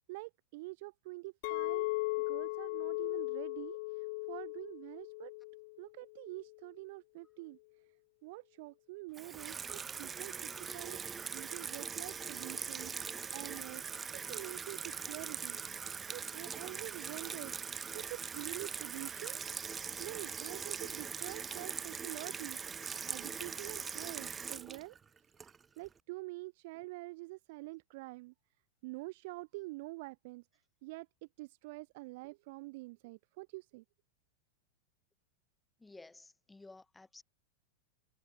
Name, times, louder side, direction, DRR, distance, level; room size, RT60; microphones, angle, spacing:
voice 1, 0.1-1.9 2.3-5.3 5.8-7.6 8.2-11.0 11.2-13.1 13.3-13.8 14.1-15.6 16.1-17.5 17.9-19.4 20.0-22.6 23.1-25.0 25.8-28.3 28.8-30.4 30.8-31.1 31.4-33.8, right 23 dB, 50° right, 0.6 m, -46 dB
Chink clink, 1.4-5.8 6.1-6.6, left 25 dB, 50° left, 1.1 m, -37 dB
Water tap faucet / Sink (filling or washing), 9.1-25.9, right 6 dB, 20° right, 1.1 m, -41 dB
voice 2, 35.8-37.2, left 3 dB, 10° left, 5.1 m, -54 dB
figure-of-eight pair, 90°, 0 cm